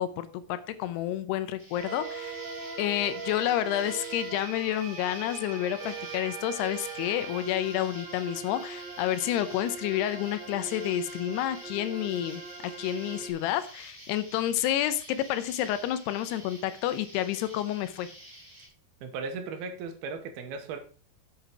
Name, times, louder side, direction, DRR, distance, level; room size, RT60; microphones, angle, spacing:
voice 1, 0.0-2.4 2.8-18.1, left 12 dB, 85° left, 12 dB, 2.8 m, -30 dB
Insect, 1.6-18.7, equal, 15° right, 4.2 m, -49 dB
sound 1, 1.8-13.3, right 4 dB, 50° right, 3.0 m, -40 dB
voice 2, 19.0-20.8, right 4 dB, 75° right, 6 dB, 3.1 m, -36 dB
8.2 x 7.8 x 4.8 m, 0.40 s
omnidirectional pair, 4.7 m